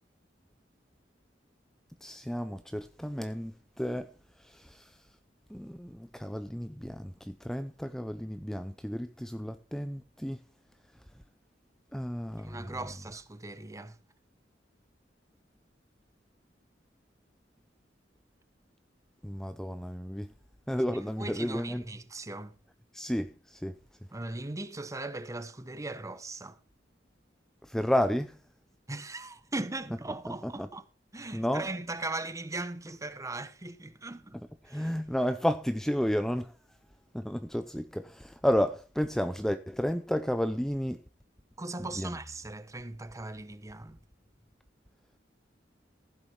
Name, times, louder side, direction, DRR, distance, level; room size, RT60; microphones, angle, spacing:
voice 1, 2.0-4.1 4.4-4.9 5.5-10.4 11.9-12.8 19.2-20.3 20.7-21.8 22.9-23.8 27.6-28.4 30.4-30.7 31.3-31.7 34.6-36.5 37.1-41.0 42.0-42.1, equal, 5° left, 0.5 m, -32 dB
voice 2, 12.4-14.0 21.2-22.6 24.1-26.6 28.9-30.8 31.1-34.9 41.6-44.0, right 2 dB, 20° right, 0.9 m, -39 dB
15.0 x 7.9 x 4.3 m
head